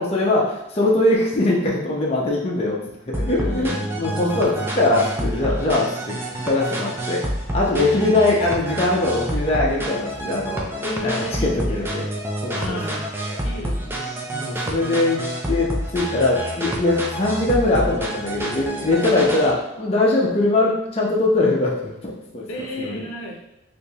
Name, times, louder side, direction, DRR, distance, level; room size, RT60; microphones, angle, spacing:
voice 1, 0.0-2.8 3.1-6.2 6.4-7.3 7.5-12.0 12.4-13.0 13.3-13.4 14.3-15.2 15.5-23.0, left 2 dB, 30° left, -4 dB, 0.6 m, -21 dB
sound 1, 3.1-19.5, right 1 dB, 10° right, 0.3 m, -28 dB
voice 2, 3.4-4.6 7.7-8.1 10.8-12.0 12.5-13.1 13.4-14.3 22.5-23.4, left 1 dB, 85° left, 0 dB, 0.6 m, -32 dB
3.4 x 2.6 x 2.9 m, 0.90 s
head